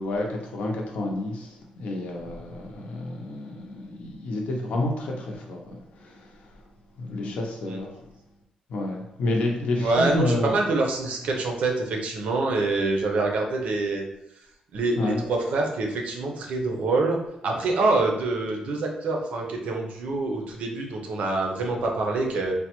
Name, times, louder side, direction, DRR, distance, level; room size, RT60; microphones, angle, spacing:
voice 1, 0.0-6.3 7.0-7.9 8.7-10.5 15.0-15.2, left 2 dB, 70° left, 1 dB, 0.6 m, -29 dB
voice 2, 9.8-14.0 14.7-22.5, right 3 dB, 65° right, 2 dB, 0.5 m, -26 dB
3.3 x 2.1 x 2.9 m, 0.84 s
wide cardioid pair, 165°, 2 cm